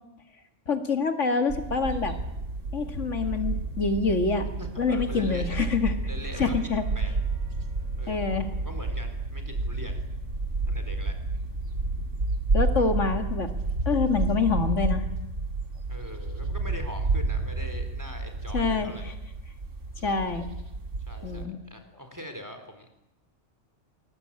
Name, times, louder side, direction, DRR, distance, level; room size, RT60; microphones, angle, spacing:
voice 1, 0.7-2.1 2.7-4.5 4.8-5.9 6.4-6.8 8.1-8.5 12.5-13.5 13.9-15.1 18.5-18.9 20.0-20.5 21.2-21.6, left 4 dB, 75° left, 7 dB, 2.4 m, -26 dB
sound 1, 1.5-21.5, right 3 dB, 80° right, 2.7 m, -30 dB
voice 2, 4.6-5.7 6.1-7.1 8.0-10.0 10.7-11.2 12.8-12.9 15.9-19.1 19.9-20.1 21.1-22.9, equal, 15° right, 6 dB, 4.0 m, -42 dB
24.5 x 20.5 x 8.9 m, 0.88 s
omnidirectional pair, 1.3 m